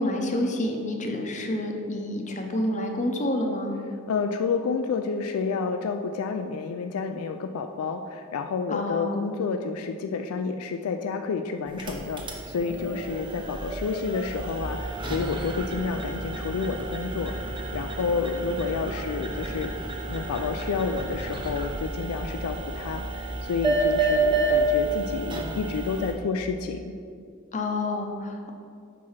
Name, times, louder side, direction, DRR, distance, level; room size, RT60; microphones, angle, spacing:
voice 1, 0.0-3.8 8.7-9.3 27.5-28.5, left 1 dB, 35° left, 3 dB, 0.7 m, -28 dB
voice 2, 4.1-19.7 20.1-26.9, left 5 dB, 80° left, 6 dB, 0.4 m, -30 dB
sound 1, 11.7-26.1, right 2 dB, 20° right, 0.8 m, -30 dB
6.0 x 4.7 x 5.6 m, 2.3 s
head